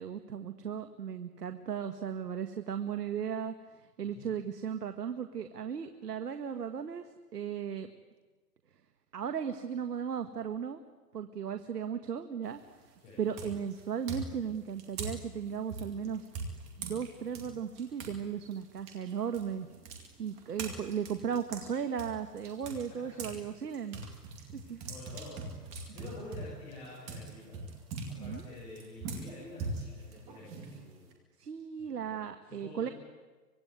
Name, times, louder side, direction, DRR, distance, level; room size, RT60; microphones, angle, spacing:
voice 1, 0.0-3.5 4.0-7.9 9.1-10.8 11.1-12.6 13.2-16.3 16.8-19.7 20.2-24.0 24.5-24.9 28.2-28.4 31.4-32.9, right 7 dB, 70° right, 8 dB, 1.8 m, -36 dB
voice 2, 4.0-4.3 13.0-13.3 24.6-27.6 28.1-31.1 31.8-32.9, left 2 dB, 10° left, -9 dB, 6.7 m, -49 dB
sound 1, 12.4-12.8 13.3-18.2 18.5-23.4 23.7-31.1, right 3 dB, 15° right, 2.2 m, -42 dB
24.5 x 21.5 x 9.6 m, 1.3 s
hypercardioid pair, 175°, 48 cm